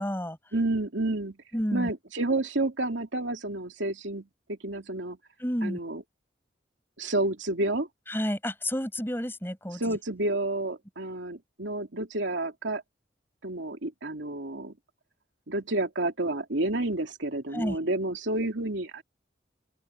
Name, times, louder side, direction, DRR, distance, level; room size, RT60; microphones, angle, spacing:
voice 1, 0.0-0.4 1.5-1.9 5.4-5.8 8.1-10.0 17.5-17.8, equal, 10° left, 7.6 m, -30 dB
voice 2, 0.5-1.4 1.7-5.2 5.6-6.0 7.0-7.9 9.8-12.8 13.4-14.7 15.5-19.0, right 2 dB, 85° right, 2.6 m, -30 dB
open air
head